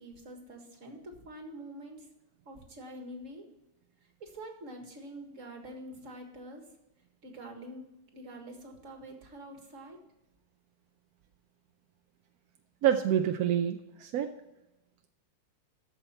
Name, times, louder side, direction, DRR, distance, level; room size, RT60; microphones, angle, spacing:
voice 1, 0.0-2.1 2.5-3.5 4.2-6.6 7.2-7.9 8.1-10.0, right 1 dB, 45° right, 3 dB, 2.0 m, -46 dB
voice 2, 12.8-14.3, right 10 dB, 70° right, 6 dB, 0.9 m, -27 dB
13.5 x 5.7 x 4.3 m, 0.95 s
omnidirectional pair, 2.0 m